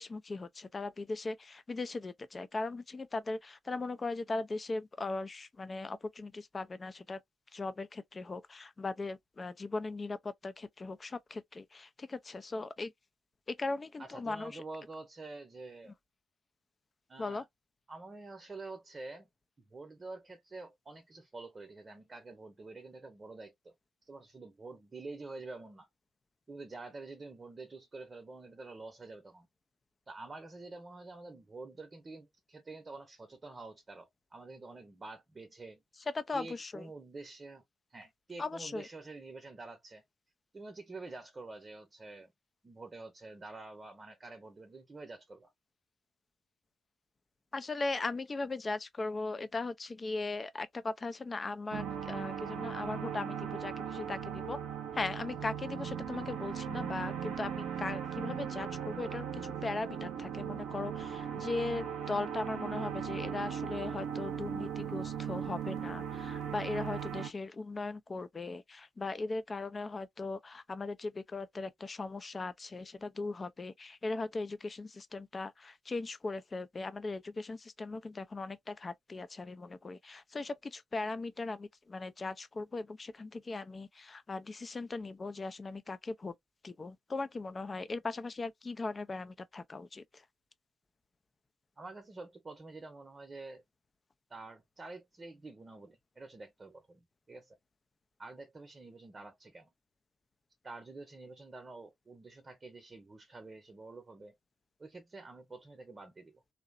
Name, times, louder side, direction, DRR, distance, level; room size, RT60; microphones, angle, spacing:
voice 1, 0.0-7.2 7.5-12.9 13.5-14.6 17.2-17.4 36.1-36.9 38.4-38.9 47.5-54.6 54.9-86.3 86.6-90.2, left 3 dB, 40° left, 0.5 m, -38 dB
voice 2, 14.0-16.0 17.1-17.5 17.9-19.3 19.7-23.7 24.0-25.9 26.5-29.5 30.1-35.8 36.3-37.6 37.9-40.0 40.5-42.3 42.6-45.5 91.8-93.6 94.3-97.0 97.3-97.6 98.2-99.7 100.6-104.4 104.8-106.4, right 3 dB, 35° right, 0.8 m, -48 dB
sound 1, 51.7-67.3, right 8 dB, 75° right, 0.5 m, -38 dB
2.7 x 2.0 x 2.4 m
hypercardioid pair, 45°, 0 cm